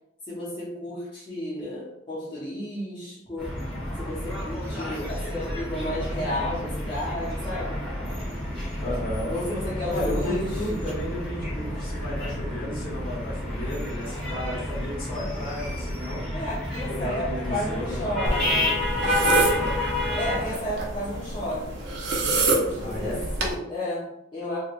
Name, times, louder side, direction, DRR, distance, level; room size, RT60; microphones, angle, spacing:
voice 1, 0.3-3.5 4.0-7.8 9.3-10.6 16.3-18.6 19.0-19.3 20.1-21.8 22.4-24.6, left 1 dB, 25° left, -10 dB, 0.8 m, -32 dB
sound 1, 3.4-20.5, left 1 dB, 5° left, 1.2 m, -30 dB
voice 2, 8.8-9.3 9.9-16.2 16.8-18.7 22.8-23.2, left 1 dB, 50° left, -6 dB, 1.3 m, -33 dB
sound 2, 18.2-23.5, right 2 dB, 60° right, 0.6 m, -28 dB
3.1 x 2.8 x 2.5 m, 0.83 s
head